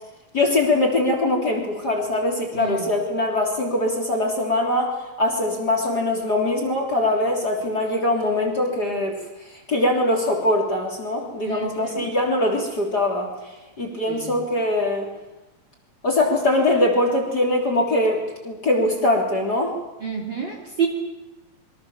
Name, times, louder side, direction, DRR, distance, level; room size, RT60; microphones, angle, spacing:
voice 1, 0.3-9.2 9.5-13.3 13.8-15.1 16.0-19.7, left 1 dB, 25° left, 2 dB, 3.8 m, -22 dB
voice 2, 11.4-11.9 14.1-14.3 20.0-20.9, right 6 dB, 30° right, 1 dB, 3.6 m, -28 dB
27.0 x 24.5 x 7.4 m, 1.0 s
omnidirectional pair, 4.2 m